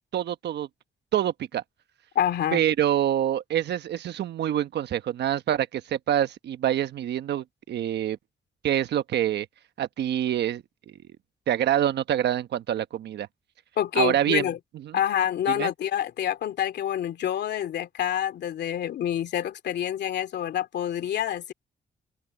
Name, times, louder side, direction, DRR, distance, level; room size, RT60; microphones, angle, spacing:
voice 1, 0.1-0.7 1.1-1.6 2.5-8.2 8.6-9.5 9.8-11.0 11.5-13.3 14.0-14.5 14.8-15.0 15.5-15.7, right 11 dB, 75° right, 1.2 m, -26 dB
voice 2, 2.1-2.6 13.8-14.6 14.9-21.5, left 10 dB, 75° left, 2.6 m, -27 dB
open air
cardioid pair, 110°, 18 cm